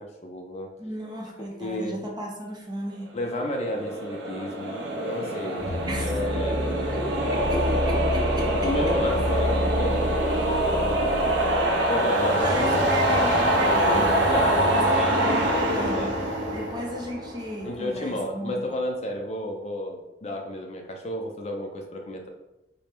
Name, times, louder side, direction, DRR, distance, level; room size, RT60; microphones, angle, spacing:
voice 1, 0.0-0.7 1.6-2.0 3.1-5.7 5.9-7.0 7.2-7.4 8.4-10.6 11.1-12.8 14.3-15.3 15.7-16.7 17.6-22.3, left 1 dB, 35° left, 2 dB, 0.4 m, -32 dB
voice 2, 0.8-3.1 5.9-6.2 6.6-9.0 11.6-11.9 12.4-14.2 14.7-16.2 16.5-18.7, equal, 25° right, 0 dB, 0.6 m, -35 dB
sound 1, 3.4-17.7, right 1 dB, 80° right, 0.7 m, -24 dB
sound 2, 5.6-12.7, left 1 dB, 65° left, 0.9 m, -30 dB
4.3 x 2.1 x 3.4 m, 0.96 s
head